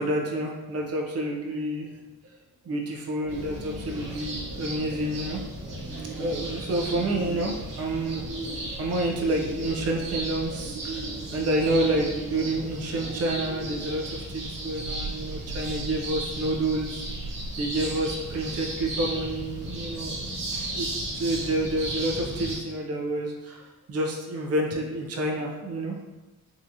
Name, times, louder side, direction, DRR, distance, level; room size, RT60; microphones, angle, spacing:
voice 1, 0.0-1.9 2.6-5.4 6.2-8.3 8.8-11.1 11.3-17.0 17.6-26.0, right 1 dB, 50° right, 0 dB, 0.6 m, -29 dB
sound 1, 3.3-22.6, right 2 dB, 80° right, 1.0 m, -34 dB
3.6 x 2.8 x 2.6 m, 1.1 s
wide cardioid pair, 145°, 33 cm